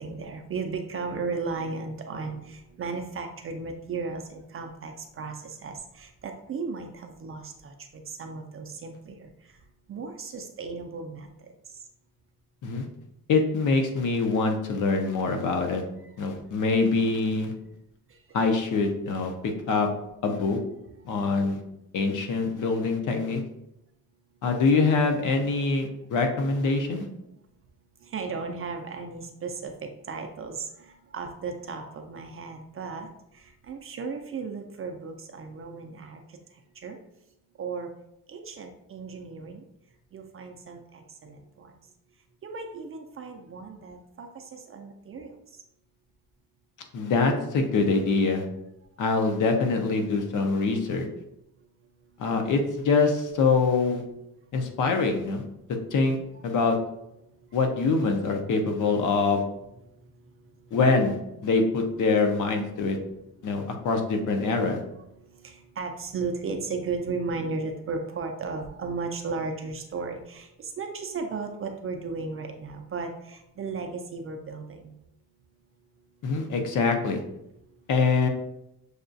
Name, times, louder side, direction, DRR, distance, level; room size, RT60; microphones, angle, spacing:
voice 1, 0.0-7.7 8.1-9.3 9.9-11.3 28.1-30.7 31.1-33.1 33.7-36.2 36.8-37.0 37.6-37.9 38.3-39.6 40.1-41.7 42.4-45.3 65.4-70.5 70.8-74.9, right 4 dB, 35° right, 4 dB, 0.4 m, -35 dB
voice 2, 13.3-15.8 16.2-17.5 18.3-19.9 20.2-20.6 21.0-21.6 21.9-23.4 24.4-27.1 46.9-48.4 49.0-51.0 52.2-54.0 54.5-55.4 55.9-56.2 56.4-56.8 57.5-59.4 60.7-63.0 63.4-64.8 76.2-77.2 77.9-78.3, left 4 dB, 55° left, 4 dB, 0.7 m, -24 dB
6.5 x 2.3 x 2.6 m, 0.83 s
cardioid pair, 145°, 37 cm